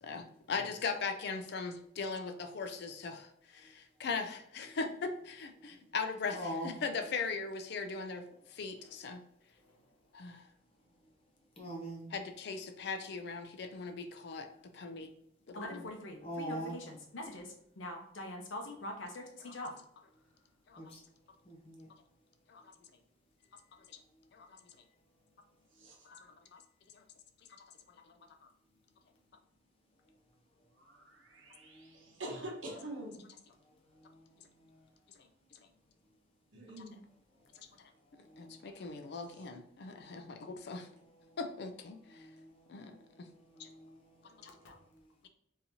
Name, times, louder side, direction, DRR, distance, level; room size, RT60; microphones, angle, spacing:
voice 1, 0.0-8.2 8.5-9.2 10.1-10.4 12.1-14.5 14.7-15.1 15.5-15.9 19.4-19.5 20.7-20.8 22.5-22.6 23.9-24.0 24.3-24.5 26.5-26.6 26.9-27.0 38.4-40.9 41.4-42.3 42.7-43.0 43.6-43.7 44.7-44.8, left 4 dB, 60° left, 6 dB, 0.4 m, -39 dB
voice 2, 6.3-6.7 11.6-12.1 16.2-16.8 20.8-21.0 21.4-21.9 31.6-32.0 34.0-34.2 38.3-38.7 39.1-39.2 40.1-40.3 41.2-41.4 42.1-44.0 44.3-44.8, equal, 30° left, 0 dB, 0.7 m, -44 dB
voice 3, 15.5-19.7 26.1-26.2, left 1 dB, 80° left, 2 dB, 0.8 m, -43 dB
voice 4, 30.8-33.3 36.5-36.9 39.3-39.4, right 1 dB, 80° right, -1 dB, 1.0 m, -45 dB
3.9 x 2.9 x 2.7 m, 0.71 s
head